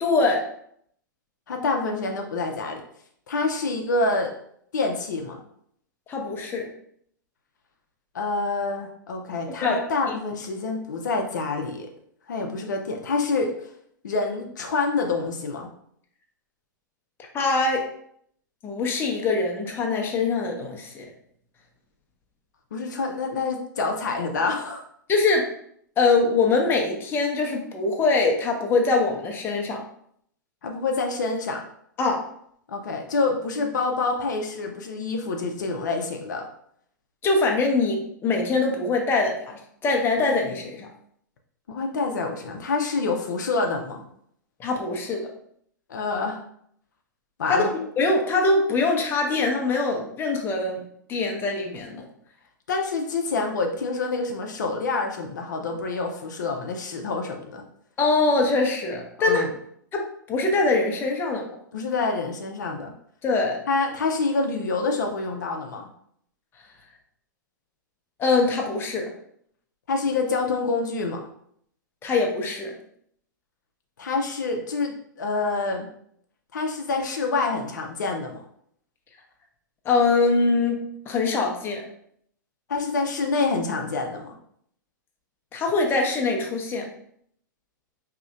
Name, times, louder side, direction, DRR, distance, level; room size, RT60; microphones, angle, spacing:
voice 1, 0.0-0.4 6.1-6.7 9.6-9.8 17.3-17.9 18.6-21.0 25.1-25.5 26.0-29.8 32.0-32.2 37.2-40.9 44.6-45.3 47.5-47.7 48.0-50.8 51.1-52.0 58.0-59.4 59.9-61.5 63.2-63.6 68.2-69.1 72.0-72.7 79.8-80.8 81.1-81.8 85.5-86.9, left 3 dB, 20° left, 2 dB, 0.7 m, -23 dB
voice 2, 1.5-2.8 3.3-4.3 4.7-5.4 8.1-11.9 12.3-13.7 14.0-15.7 22.7-24.8 30.6-31.6 32.7-36.5 41.7-44.1 45.9-46.4 47.4-47.7 52.7-57.6 59.2-59.5 61.7-62.9 63.7-65.9 69.9-71.3 74.0-75.9 76.5-78.4 82.7-84.3, left 3 dB, 65° left, 3 dB, 0.5 m, -27 dB
4.8 x 2.8 x 2.4 m, 0.67 s
figure-of-eight pair, 100°, 11 cm